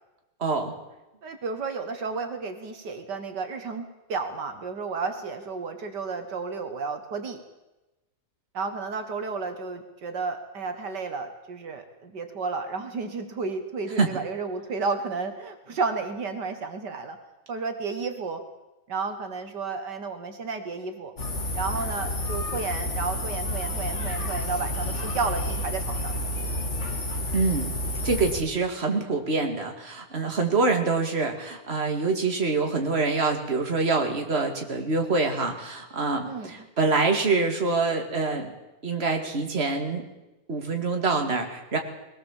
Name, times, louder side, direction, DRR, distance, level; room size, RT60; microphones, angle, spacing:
voice 1, 0.4-0.7 14.0-14.1 27.3-27.7 28.0-38.5 38.8-40.0 40.5-41.8, right 3 dB, 35° right, 3 dB, 2.6 m, -25 dB
voice 2, 1.2-7.4 8.5-17.2 17.5-18.4 18.9-21.1 21.5-26.2 36.2-36.6, right 4 dB, 80° right, 7 dB, 2.3 m, -32 dB
sound 1, 21.2-28.4, left 1 dB, 40° left, 2.5 m, -30 dB
22.5 x 18.0 x 7.4 m, 1.0 s
omnidirectional pair, 1.8 m